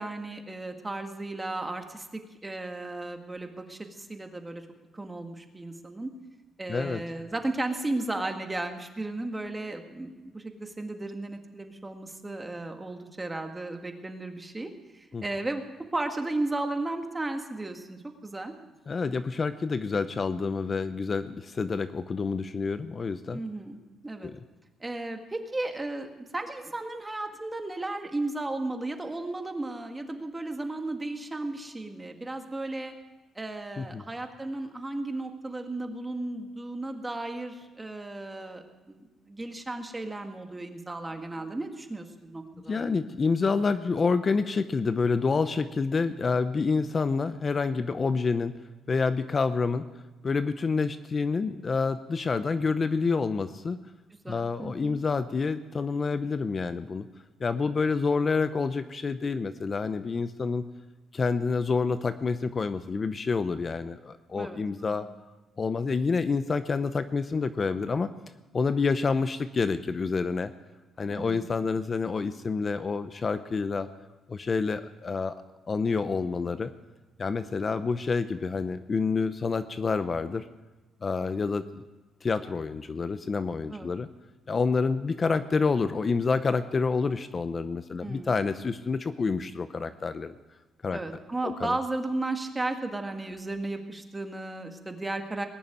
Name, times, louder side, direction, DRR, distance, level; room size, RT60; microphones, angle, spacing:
voice 1, 0.0-4.6 4.9-6.1 6.6-15.6 15.9-18.5 23.3-23.8 24.0-24.3 24.8-32.9 33.4-42.8 54.2-55.0 64.4-65.1 71.1-71.5 83.7-83.9 88.0-88.3 90.9-95.5, right 2 dB, 15° right, 5 dB, 1.8 m, -35 dB
voice 2, 6.7-7.0 15.1-15.2 18.9-23.4 24.2-24.4 33.8-34.0 42.7-48.5 48.9-49.9 50.2-53.8 54.3-57.1 57.4-60.6 61.1-65.1 65.6-68.1 68.5-70.5 71.0-73.9 74.3-75.4 75.7-76.7 77.2-80.5 81.0-81.8 82.2-84.1 84.5-90.3 90.8-91.0 91.4-91.8, left 4 dB, 35° left, 11 dB, 0.7 m, -28 dB
20.0 x 7.0 x 9.4 m, 1.2 s
cardioid pair, 90°, 0 cm